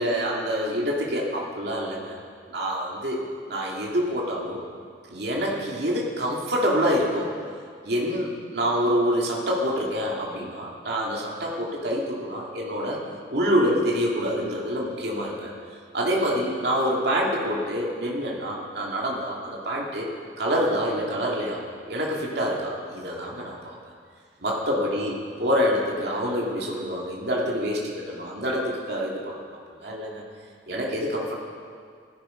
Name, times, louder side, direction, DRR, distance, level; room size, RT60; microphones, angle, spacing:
voice 1, 0.0-2.2 2.5-3.2 3.5-4.6 5.1-7.3 7.8-13.0 13.3-15.5 15.9-20.1 20.4-21.6 21.9-23.8 24.4-25.1 25.4-29.4 29.8-30.2 30.7-31.4, equal, 60° right, -3 dB, 2.6 m, -26 dB
16.5 x 14.0 x 5.3 m, 2.1 s
head